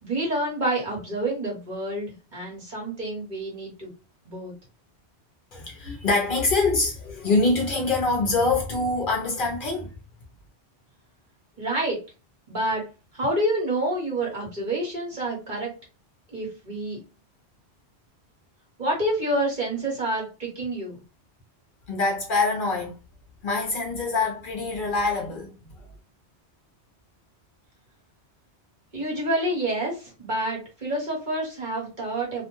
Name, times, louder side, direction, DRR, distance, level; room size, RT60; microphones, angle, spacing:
voice 1, 0.0-3.9 4.3-4.5 11.6-12.0 12.5-12.9 13.1-15.7 16.3-17.0 18.8-21.0 28.9-32.4, right 1 dB, 45° right, 1.2 m, -28 dB
voice 2, 5.5-9.9 21.9-22.9 23.4-25.9, left 3 dB, 55° left, 0.7 m, -25 dB
2.5 x 2.1 x 2.9 m
omnidirectional pair, 1.1 m